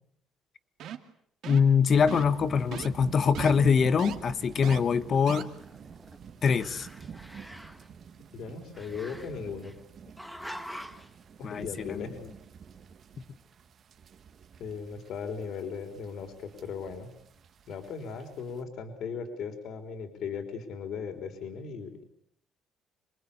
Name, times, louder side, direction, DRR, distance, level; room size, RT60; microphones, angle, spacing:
sound 1, 0.8-1.1 1.4-1.7 2.1-2.4 2.7-2.9 3.3-3.5 4.0-4.1 4.6-4.8 5.3-5.4, right 10 dB, 55° right, 2.4 m, -39 dB
voice 1, 1.5-5.5 6.4-6.9 11.4-12.1, left 6 dB, 35° left, 14 dB, 1.3 m, -24 dB
sound 2, 1.9-18.6, right 6 dB, 35° right, 1.8 m, -47 dB
Growling, 5.0-6.2 6.5-7.9 8.7-9.7 10.2-11.1, equal, ahead, 1.4 m, -45 dB
voice 2, 8.3-9.7 11.4-12.2 14.6-17.1 17.7-22.0, left 6 dB, 55° left, 7 dB, 4.0 m, -37 dB
27.0 x 24.0 x 8.6 m, 0.71 s
cardioid pair, 170°, 0 cm